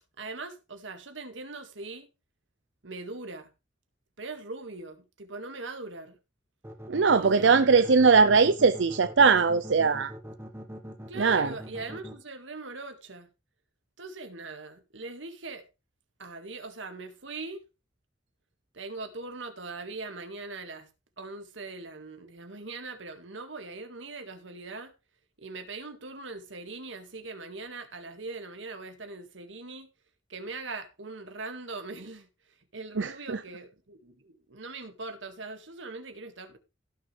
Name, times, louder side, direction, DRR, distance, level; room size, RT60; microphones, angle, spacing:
voice 1, 0.2-2.1 2.8-3.5 4.2-6.2 7.2-7.8 11.1-13.3 14.0-15.6 16.2-17.6 18.7-20.9 21.2-24.9 25.4-29.9 30.3-32.3 32.7-36.6, right 3 dB, 90° right, 2.0 m, -41 dB
sound 1, 6.6-12.1, equal, 15° right, 1.6 m, -42 dB
voice 2, 6.9-10.1 11.2-11.5 33.0-33.4, right 5 dB, 70° right, 0.6 m, -21 dB
17.0 x 6.6 x 3.3 m
head